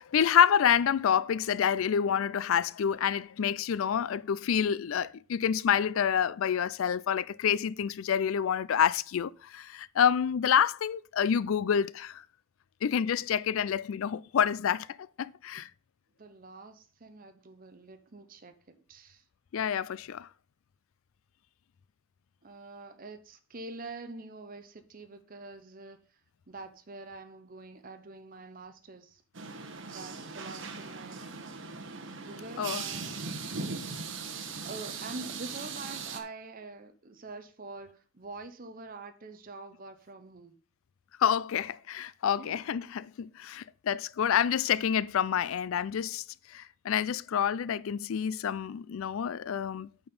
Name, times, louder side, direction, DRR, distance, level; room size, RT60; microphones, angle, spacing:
voice 1, 0.0-12.2 12.8-14.9 15.2-15.7 19.5-20.3 32.6-32.8 41.2-46.2 46.5-49.9, left 8 dB, 70° left, 0.4 m, -28 dB
voice 2, 16.2-19.2 22.4-26.2 26.5-29.2 29.9-31.2 32.2-33.4 34.6-40.6 42.4-42.6, right 3 dB, 40° right, 0.7 m, -45 dB
sound 1, 29.3-36.2, right 4 dB, 60° right, 1.1 m, -39 dB
8.6 x 4.4 x 5.3 m
head